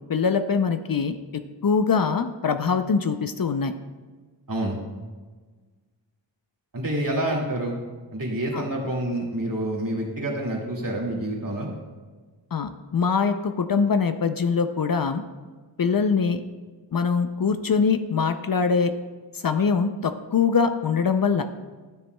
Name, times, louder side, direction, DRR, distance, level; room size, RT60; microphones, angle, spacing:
voice 1, 0.1-1.1 1.6-3.7 8.5-8.6 12.5-15.2 15.8-16.4 16.9-18.9 19.3-21.4, left 5 dB, 50° left, 9 dB, 0.5 m, -23 dB
voice 2, 6.7-7.8 8.1-11.7, right 1 dB, 45° right, -3 dB, 2.1 m, -27 dB
12.5 x 6.9 x 2.2 m, 1.4 s
wide cardioid pair, 50°, 44 cm